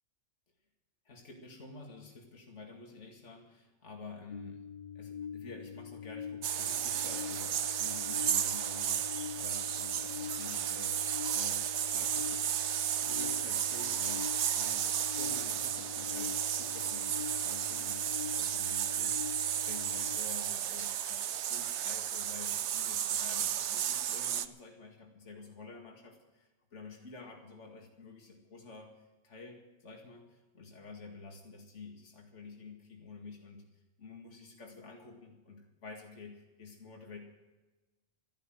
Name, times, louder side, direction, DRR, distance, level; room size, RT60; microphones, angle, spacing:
voice 1, 1.1-4.6 5.0-12.5 13.0-37.2, left 3 dB, 70° left, 1 dB, 2.4 m, -50 dB
sound 1, 4.3-20.2, left 7 dB, 40° left, 0.6 m, -44 dB
sound 2, 6.4-24.5, right 10 dB, 70° right, 0.9 m, -33 dB
13.5 x 11.0 x 7.7 m, 1.1 s
omnidirectional pair, 1.3 m